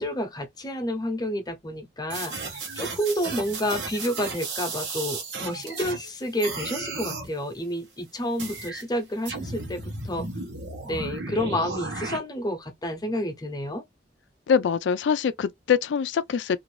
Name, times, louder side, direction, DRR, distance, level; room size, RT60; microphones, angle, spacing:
voice 1, 0.0-10.3 10.8-13.8, equal, 25° left, 0.7 m, -30 dB
sound 1, 2.1-6.1 6.4-7.3 8.4-8.8 9.3-12.2, right 3 dB, 80° right, 1.1 m, -34 dB
voice 2, 14.5-16.6, left 7 dB, 85° left, 0.3 m, -24 dB
2.6 x 2.5 x 3.1 m
head